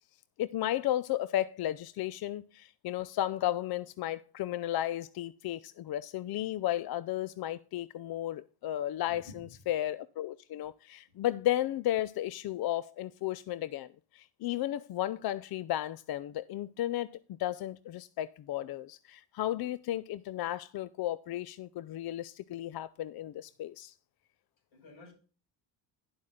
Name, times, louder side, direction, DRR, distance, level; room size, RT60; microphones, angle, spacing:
voice 1, 0.4-23.9, left 13 dB, 50° left, 0.5 m, -34 dB
voice 2, 9.1-9.5 24.7-25.1, left 2 dB, 75° left, 6.3 m, -51 dB
10.5 x 7.5 x 3.7 m
cardioid pair, 100°, 47 cm